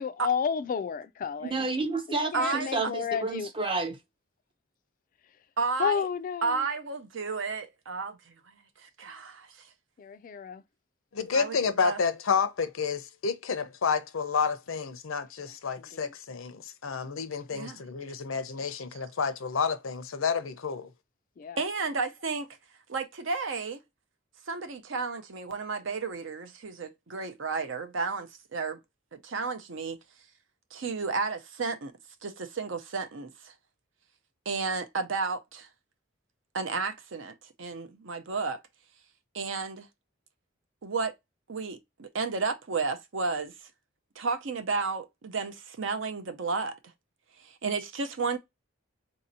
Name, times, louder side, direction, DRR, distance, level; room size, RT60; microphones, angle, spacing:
voice 1, 0.0-1.7 2.3-3.5 5.8-6.6 10.0-10.6 15.8-16.1 18.6-18.8 21.4-21.6, left 6 dB, 40° left, 0.3 m, -31 dB
voice 2, 1.4-4.0, right 3 dB, 25° right, 0.6 m, -30 dB
voice 3, 2.3-2.7 5.6-6.1 6.4-8.3 8.8-9.5 11.3-12.0 17.5-17.8 21.6-22.5 22.9-23.8 24.5-28.8 29.1-30.0 30.7-31.9 32.2-33.5 34.5-35.7 36.5-38.6 39.3-39.9 40.8-41.1 41.5-43.5 44.2-46.8 47.4-48.4, right 4 dB, 65° right, 0.6 m, -32 dB
voice 4, 11.1-20.9, left 5 dB, 85° left, 0.6 m, -30 dB
4.0 x 2.7 x 2.6 m
head